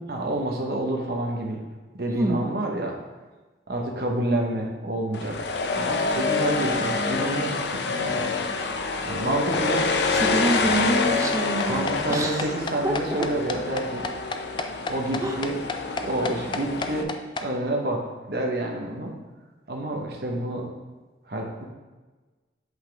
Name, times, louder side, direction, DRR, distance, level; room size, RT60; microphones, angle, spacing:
voice 1, 0.1-1.6 1.9-3.0 3.7-5.4 5.7-8.3 9.0-9.9 10.3-10.4 11.7-14.1 14.9-15.6 16.0-17.1 17.4-19.1 19.7-20.7 21.3-21.7, right 1 dB, 60° right, 1 dB, 1.1 m, -28 dB
sound 1, 5.1-17.0, left 4 dB, 75° left, 0.6 m, -27 dB
sound 2, 9.5-17.5, left 3 dB, 25° left, 0.4 m, -32 dB
voice 2, 10.1-12.6 12.8-13.0 15.2-15.4, right 1 dB, 20° right, 2 dB, 0.6 m, -26 dB
7.9 x 5.6 x 3.5 m, 1.3 s
head